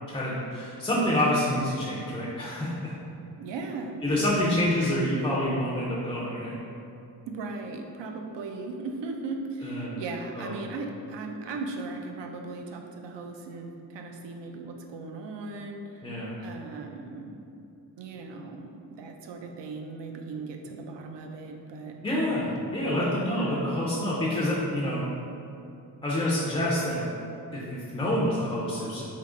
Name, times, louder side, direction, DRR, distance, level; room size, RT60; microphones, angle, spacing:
voice 1, 0.1-2.9 4.0-6.5 9.6-10.0 10.4-10.5 16.0-16.3 22.0-25.0 26.0-27.0 27.5-29.0, left 1 dB, 10° left, -7 dB, 0.3 m, -27 dB
voice 2, 3.4-4.3 7.3-17.4 18.0-22.0 23.1-23.9, right 3 dB, 85° right, 3 dB, 0.5 m, -38 dB
3.7 x 2.8 x 3.6 m, 2.7 s
wide cardioid pair, 165°, 42 cm